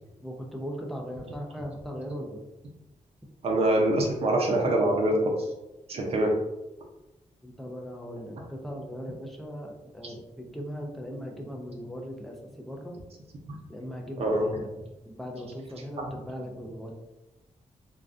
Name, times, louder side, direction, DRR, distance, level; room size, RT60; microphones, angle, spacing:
voice 1, 0.2-2.4 7.4-13.0 13.7-14.8 15.0-16.9, equal, ahead, 0 dB, 0.4 m, -38 dB
voice 2, 3.4-5.3 5.9-6.3 10.0-10.1 14.2-14.6, right 1 dB, 50° right, 0 dB, 0.6 m, -24 dB
3.5 x 2.2 x 2.5 m, 1.0 s
wide cardioid pair, 180°, 13 cm